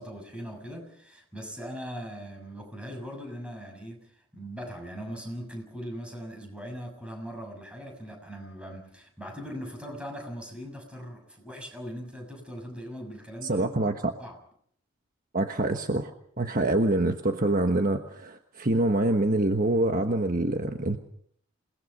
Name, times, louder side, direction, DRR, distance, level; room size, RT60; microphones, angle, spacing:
voice 1, 0.0-13.8 14.2-14.4, equal, 5° right, 2 dB, 6.6 m, -40 dB
voice 2, 13.4-14.1 15.3-16.1 16.4-21.0, right 2 dB, 45° right, 5 dB, 1.3 m, -25 dB
28.0 x 20.0 x 5.5 m, 0.66 s
head